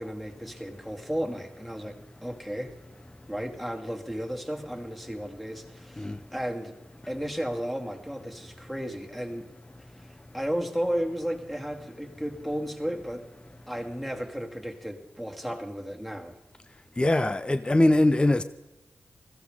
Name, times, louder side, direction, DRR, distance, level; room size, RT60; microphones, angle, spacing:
voice 1, 0.0-2.8 3.3-6.8 7.1-9.5 10.3-13.2 13.7-16.4, equal, ahead, 2.4 m, -34 dB
voice 2, 17.0-18.4, left 1 dB, 20° left, 0.7 m, -22 dB
20.5 x 15.5 x 3.7 m
cardioid pair, 60°, 5 cm